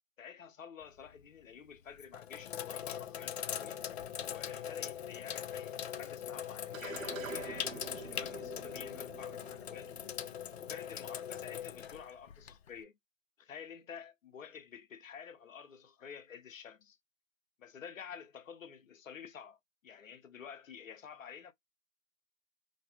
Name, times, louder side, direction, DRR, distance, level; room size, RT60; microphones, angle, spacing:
voice 1, 0.2-3.8 4.2-10.1 10.6-13.0 13.4-17.0 17.6-19.6 19.8-21.5, left 7 dB, 85° left, 0.8 m, -50 dB
Sink (filling or washing), 0.8-1.2 1.9-12.8, left 9 dB, 55° left, 0.5 m, -41 dB
sound 1, 6.7-11.4, right 4 dB, 80° right, 1.2 m, -47 dB
3.1 x 2.1 x 2.8 m
hypercardioid pair, 145°, 39 cm